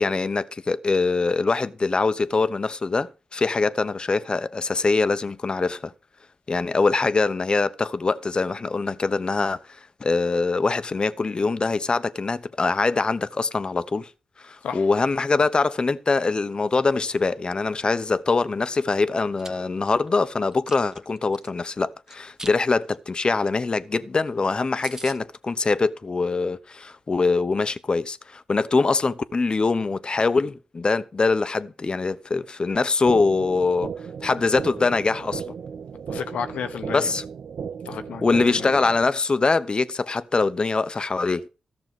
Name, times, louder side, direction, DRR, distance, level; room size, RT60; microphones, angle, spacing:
voice 1, 0.0-5.9 6.5-14.1 14.4-33.9 34.2-35.5 36.9-37.2 38.2-41.5, left 3 dB, 45° left, 0.9 m, -23 dB
Chewing mastication, 19.1-19.5 20.0-21.5 22.1-22.6 22.9-23.1 23.5-23.6 23.8-23.9 24.3-24.4 24.5-24.6 24.8-25.2, right 2 dB, 25° right, 1.3 m, -40 dB
sound 1, 33.1-39.1, right 6 dB, 70° right, 0.6 m, -35 dB
voice 2, 36.1-37.1 37.8-38.7, left 7 dB, 80° left, 1.1 m, -32 dB
13.5 x 6.5 x 6.0 m
supercardioid pair, 40°, 2 cm